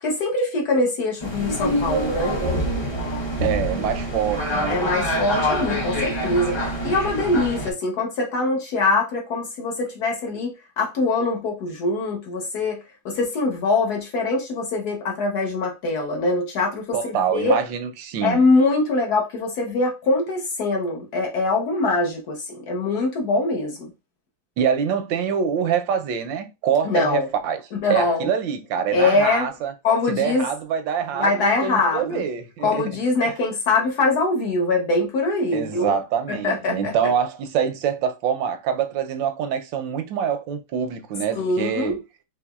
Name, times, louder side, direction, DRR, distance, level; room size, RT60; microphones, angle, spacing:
voice 1, 0.0-2.4 4.7-6.6 6.8-17.6 18.2-23.9 26.8-27.3 27.8-28.3 28.9-29.5 29.8-30.5 31.1-32.2 32.6-35.9 36.3-36.9 41.3-42.0, left 3 dB, 60° left, 1.5 m, -23 dB
sound 1, 1.2-7.7, equal, 25° left, 0.6 m, -25 dB
voice 2, 3.4-4.8 6.8-6.9 16.9-18.4 24.6-27.6 27.9-29.7 30.1-32.8 33.2-33.3 35.5-42.0, right 8 dB, 80° right, 1.4 m, -25 dB
5.0 x 3.3 x 2.3 m
omnidirectional pair, 2.0 m